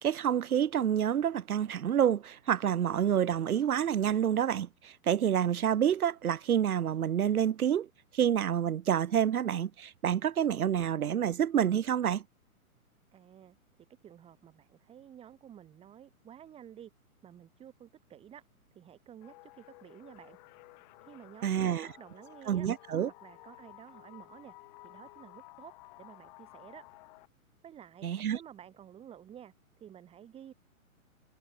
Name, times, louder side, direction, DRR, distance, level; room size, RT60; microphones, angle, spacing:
voice 1, 0.0-7.9 8.1-12.2 21.4-21.9 22.5-23.1 28.0-28.4, right 9 dB, 80° right, 1.0 m, -28 dB
voice 2, 13.1-13.6 14.0-16.9 17.2-18.4 18.7-20.4 21.1-22.7 23.1-24.6 24.8-26.8 27.6-29.5 29.8-30.5, right 10 dB, 15° right, 4.7 m, -52 dB
sound 1, 19.2-27.3, left 24 dB, 30° left, 7.0 m, -54 dB
hypercardioid pair, 155°, 43 cm